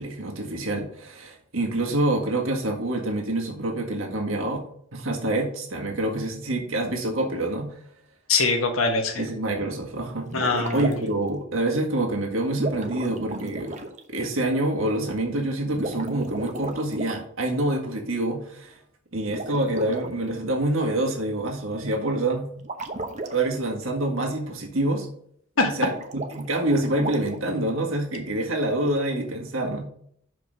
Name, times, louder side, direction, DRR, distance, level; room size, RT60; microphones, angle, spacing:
voice 1, 0.0-4.6 4.9-7.8 9.2-10.3 10.7-13.7 14.1-18.8 19.1-22.5 23.3-25.1 25.6-29.9, right 1 dB, 80° right, 0 dB, 1.7 m, -26 dB
voice 2, 8.3-9.3 10.3-10.9 25.6-25.7, left 3 dB, 90° left, 4 dB, 1.5 m, -23 dB
sound 1, 10.2-11.2 12.5-14.0 15.7-17.2 19.3-20.1 22.6-23.3 25.8-27.5, right 2 dB, 35° right, 0.9 m, -34 dB
6.3 x 5.1 x 5.1 m, 0.65 s
head